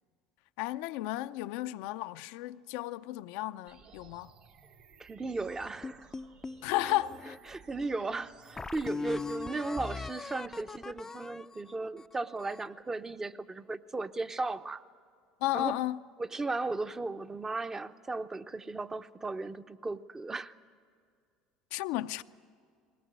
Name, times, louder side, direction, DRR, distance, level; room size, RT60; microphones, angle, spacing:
voice 1, 0.6-4.3 6.6-7.4 15.4-16.0 21.7-22.2, left 16 dB, 70° left, 0.5 m, -33 dB
sound 1, 3.7-9.7, right 6 dB, 65° right, 3.6 m, -57 dB
voice 2, 5.0-6.1 6.8-6.9 7.5-14.8 15.5-15.8 16.2-20.5, right 3 dB, 20° right, 0.8 m, -36 dB
sound 2, 5.8-7.4 7.9-8.0 8.6-12.8, left 4 dB, 20° left, 0.5 m, -40 dB
20.5 x 18.5 x 9.5 m
hypercardioid pair, 75°, 2 cm